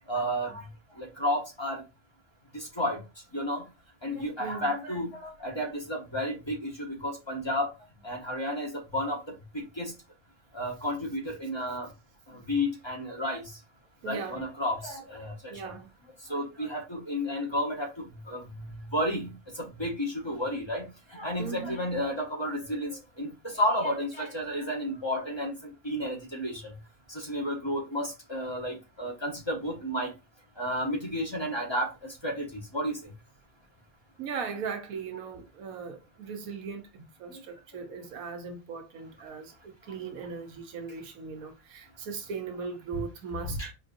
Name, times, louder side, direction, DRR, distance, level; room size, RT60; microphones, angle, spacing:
voice 1, 0.1-1.8 2.5-3.0 3.3-3.7 4.0-7.8 8.0-9.9 10.5-11.9 12.3-13.6 14.0-15.7 16.2-26.8 27.1-30.1 30.6-33.1 37.3-37.4 37.7-37.9 39.9-40.3 43.4-43.7, equal, 20° left, 1.0 m, -32 dB
voice 2, 14.0-14.4 15.5-15.9 21.4-21.8 34.2-43.7, right 5 dB, 85° right, 1.3 m, -38 dB
5.2 x 2.6 x 2.6 m
omnidirectional pair, 1.4 m